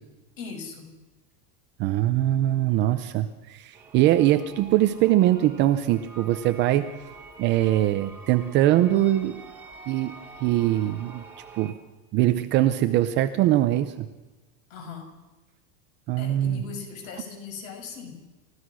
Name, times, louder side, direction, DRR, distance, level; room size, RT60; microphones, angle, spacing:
voice 1, 0.4-0.9 14.7-15.1 16.2-18.2, left 6 dB, 55° left, 4 dB, 6.2 m, -39 dB
voice 2, 1.8-6.9 7.4-9.4 9.9-10.1 10.4-11.2 11.6-11.7 12.1-14.1 16.1-16.6, right 13 dB, 25° right, 9 dB, 0.6 m, -22 dB
sound 1, 3.7-11.7, right 3 dB, 5° right, 2.4 m, -46 dB
29.5 x 15.0 x 6.3 m, 1.1 s
supercardioid pair, 170°, 47 cm